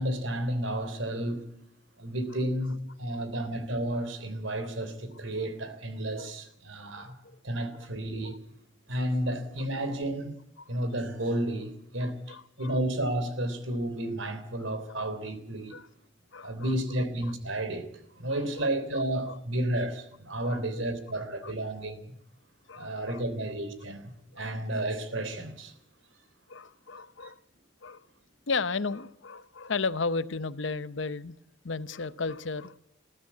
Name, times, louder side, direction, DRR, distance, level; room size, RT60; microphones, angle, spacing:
voice 1, 0.0-1.4 2.0-7.2 7.4-8.4 8.9-10.3 10.7-15.7 16.4-17.9 18.2-22.1 22.8-25.7 27.2-27.3, right 1 dB, 85° right, 3.4 m, -32 dB
voice 2, 3.1-3.5 4.6-4.7 6.2-6.3 7.0-7.1 7.5-7.9 8.2-8.4 9.9-10.0 10.6-10.7 12.0-12.8 15.7-15.9 16.3-16.7 18.3-19.4 20.4-20.8 21.4-21.5 22.7-23.2 24.3-24.5 26.5-27.4 27.8-28.0 28.5-31.4 31.6-32.8, left 4 dB, 80° left, 0.8 m, -35 dB
21.0 x 14.5 x 8.5 m
head